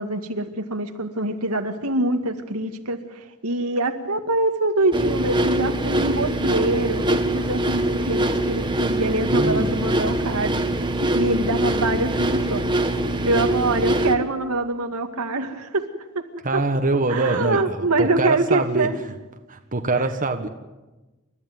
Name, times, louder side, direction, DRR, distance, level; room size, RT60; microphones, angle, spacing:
voice 1, 0.0-12.7 13.3-15.9 16.1-16.2 16.5-16.6 17.1-18.9, right 2 dB, 80° right, 6 dB, 2.1 m, -24 dB
sound 1, 4.9-14.2, right 1 dB, 20° right, 1.7 m, -23 dB
voice 2, 9.3-9.7 16.4-18.9 19.5-20.5, right 3 dB, 40° right, 6 dB, 1.4 m, -24 dB
29.5 x 13.5 x 9.5 m, 1.1 s
head